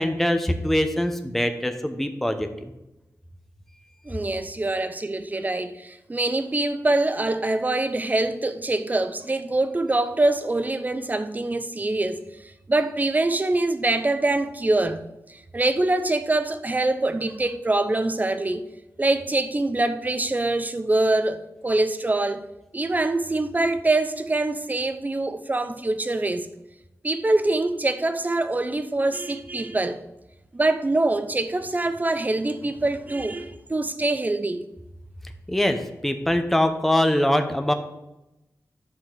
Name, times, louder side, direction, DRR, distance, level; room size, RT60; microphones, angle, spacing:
voice 1, 0.0-2.7 35.5-37.7, left 1 dB, 5° left, 0.8 m, -23 dB
voice 2, 4.0-12.2 12.7-15.0 15.3-18.6 19.0-22.5 22.7-26.5 27.0-30.0 30.5-34.6, right 2 dB, 25° right, 0.7 m, -24 dB
10.5 x 6.9 x 3.8 m
wide cardioid pair, 100°, 6 cm